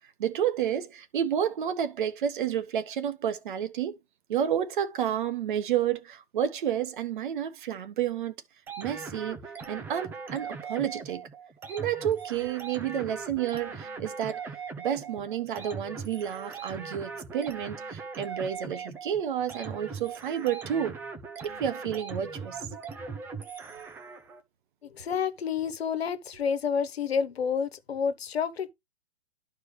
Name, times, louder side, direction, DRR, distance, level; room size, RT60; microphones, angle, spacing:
voice 1, 0.2-3.9 4.3-8.3 8.8-9.4 9.7-11.3 11.7-14.4 14.8-21.0 21.4-22.6, right 9 dB, 50° right, 1.2 m, -30 dB
sound 1, 8.7-24.4, right 5 dB, 5° right, 0.4 m, -40 dB
voice 2, 24.8-28.7, left 6 dB, 75° left, 1.3 m, -29 dB
11.5 x 4.7 x 3.2 m
hypercardioid pair, 145°, 31 cm